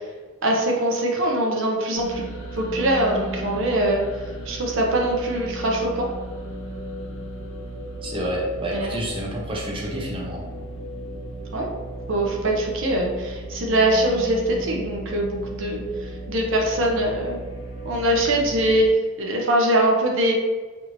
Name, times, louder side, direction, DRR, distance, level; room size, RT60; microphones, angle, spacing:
voice 1, 0.4-2.2 2.5-4.0 4.5-6.1 8.7-9.0 11.5-11.7 12.1-15.8 16.3-17.4 17.8-18.9 19.2-20.3, right 1 dB, 65° right, 0 dB, 0.7 m, -22 dB
sound 1, 1.9-18.8, equal, 75° left, 0.7 m, -35 dB
voice 2, 8.0-10.4, right 1 dB, 25° right, -3 dB, 0.6 m, -29 dB
4.6 x 2.5 x 3.0 m, 1.3 s
head